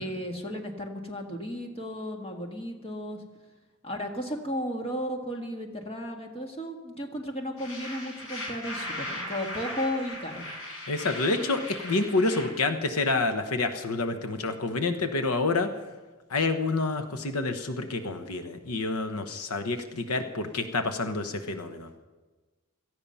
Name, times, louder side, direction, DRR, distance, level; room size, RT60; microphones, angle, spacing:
voice 1, 0.0-3.2 3.8-10.4, equal, 25° left, 3 dB, 1.7 m, -34 dB
sound 1, 7.6-12.4, left 1 dB, 60° left, 5.1 m, -38 dB
voice 2, 10.9-15.7 16.3-21.9, left 3 dB, 80° left, 8 dB, 1.1 m, -28 dB
17.5 x 14.0 x 5.6 m, 1.3 s
head